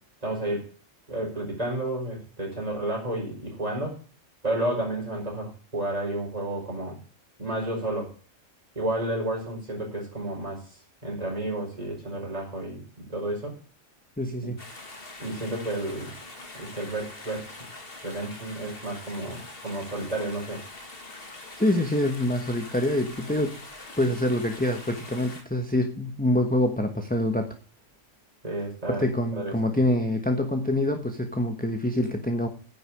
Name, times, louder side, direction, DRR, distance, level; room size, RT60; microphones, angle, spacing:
voice 1, 0.2-0.7 1.1-4.0 4.4-7.0 7.4-8.1 8.7-10.6 11.0-12.8 13.1-13.6 14.4-14.5 15.2-16.1 16.6-17.5 18.0-20.6 28.4-29.0 29.4-29.7, right 1 dB, 30° right, -2 dB, 5.1 m, -31 dB
voice 2, 14.2-14.6 21.6-23.6 24.0-27.6 28.9-32.5, left 1 dB, 5° left, 4 dB, 1.2 m, -25 dB
sound 1, 14.6-25.4, left 2 dB, 50° left, 2.2 m, -43 dB
10.0 x 6.9 x 8.5 m, 0.38 s
omnidirectional pair, 1.3 m